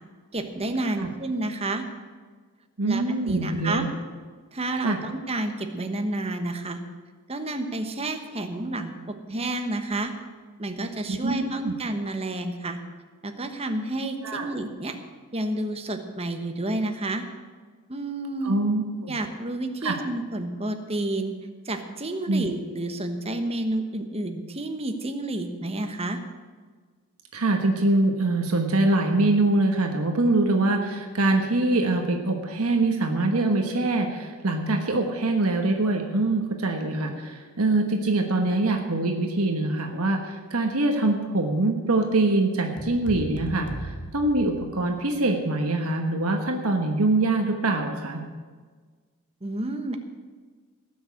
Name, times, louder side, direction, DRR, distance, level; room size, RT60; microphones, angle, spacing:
voice 1, 0.3-1.8 2.8-3.9 4.5-6.8 7.3-8.9 9.3-10.1 10.6-12.8 13.2-15.0 15.3-17.2 17.9-18.6 19.1-21.3 21.6-26.2 49.4-50.0, right 2 dB, 25° right, 7 dB, 1.1 m, -30 dB
voice 2, 2.8-3.9 4.8-5.0 11.1-11.7 14.2-14.5 18.4-19.1 19.8-20.0 22.3-22.5 27.3-48.2, right 2 dB, 75° right, 3 dB, 1.3 m, -24 dB
sound 1, 42.8-45.0, right 1 dB, 55° left, 1.3 m, -37 dB
17.5 x 6.4 x 8.4 m, 1.5 s
head